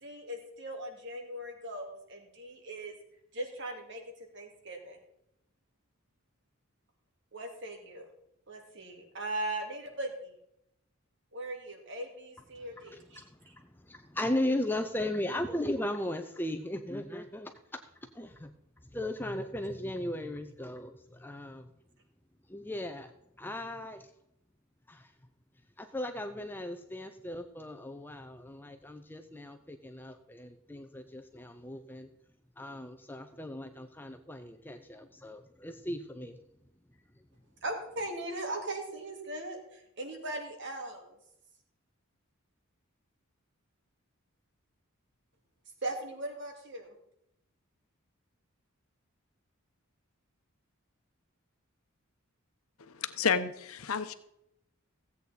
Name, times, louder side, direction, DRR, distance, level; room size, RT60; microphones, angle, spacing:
voice 1, 0.0-2.9 3.3-5.0 7.3-8.1 8.5-10.3 11.3-13.5 37.6-41.2 45.8-46.9, right 1 dB, 55° right, 3 dB, 2.4 m, -39 dB
voice 2, 12.9-13.2 13.8-17.5 18.1-18.5 18.9-21.7 22.5-23.1 23.4-24.1 24.9-25.1 25.8-32.1 32.6-36.4, left 1 dB, 10° left, 6 dB, 0.6 m, -37 dB
voice 3, 52.9-54.2, left 6 dB, 85° left, 11 dB, 0.9 m, -30 dB
16.0 x 8.3 x 4.1 m, 0.81 s
head